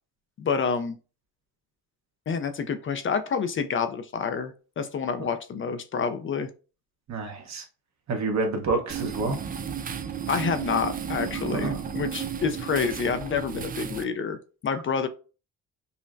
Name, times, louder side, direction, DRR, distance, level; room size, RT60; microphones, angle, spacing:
voice 1, 0.4-1.0 2.3-6.5 10.3-14.4 14.6-15.1, left 6 dB, 40° left, 0.5 m, -28 dB
voice 2, 7.1-7.6 8.1-9.4 11.5-11.8, right 3 dB, 55° right, 1.1 m, -28 dB
sound 1, 8.9-14.0, right 8 dB, 30° right, 0.4 m, -33 dB
5.5 x 2.1 x 2.5 m
cardioid pair, 80°, 32 cm